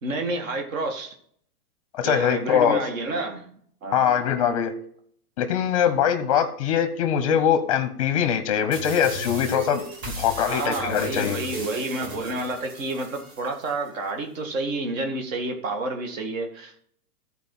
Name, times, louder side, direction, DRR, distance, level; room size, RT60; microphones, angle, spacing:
voice 1, 0.0-1.2 2.0-4.1 10.5-16.8, right 2 dB, 55° right, 4 dB, 1.9 m, -30 dB
voice 2, 1.9-2.8 3.9-4.7 5.4-9.8 10.2-11.4, left 8 dB, 20° left, 9 dB, 0.7 m, -22 dB
sound 1, 8.7-13.7, equal, 40° right, 3.0 m, -36 dB
12.5 x 4.8 x 5.4 m, 0.62 s
hypercardioid pair, 175°, 46 cm